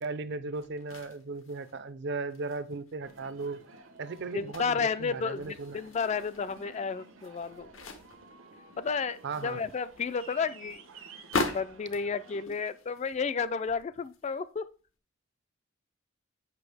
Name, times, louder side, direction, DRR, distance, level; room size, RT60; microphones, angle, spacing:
voice 1, 0.0-3.6 4.0-5.8 9.2-9.6, right 3 dB, 60° right, 0.6 m, -36 dB
sound 1, 0.5-1.9 2.3-4.9 5.3-8.3 8.7-14.4 14.9-15.0, left 3 dB, 85° left, 1.1 m, -41 dB
Aircraft, 3.0-12.4, right 4 dB, 85° right, 1.1 m, -53 dB
voice 2, 4.3-7.7 8.8-10.8 11.3-14.6, left 5 dB, 35° left, 0.3 m, -32 dB
8.2 x 5.8 x 3.4 m
head